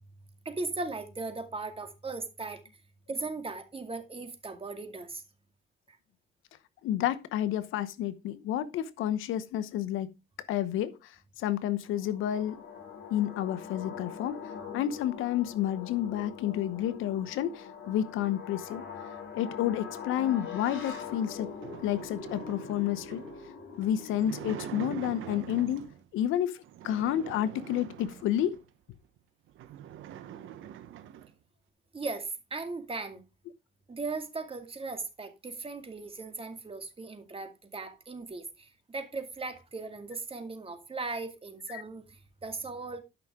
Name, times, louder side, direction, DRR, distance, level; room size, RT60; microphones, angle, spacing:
voice 1, 0.4-2.6 3.1-5.2 5.9-6.0 31.9-33.2 33.9-43.0, right 3 dB, 30° right, 2.3 m, -38 dB
voice 2, 6.8-10.1 10.5-12.6 13.1-18.8 19.3-21.5 21.8-23.2 23.8-25.8 26.1-28.6 41.7-41.8, left 11 dB, 90° left, 0.9 m, -30 dB
sound 1, 11.8-24.9, left 6 dB, 75° left, 3.6 m, -43 dB
sound 2, 20.9-26.1 26.6-28.7 29.2-29.3 29.5-31.3, right 10 dB, 85° right, 1.1 m, -44 dB
12.5 x 6.0 x 3.7 m
cardioid pair, 90°, 20 cm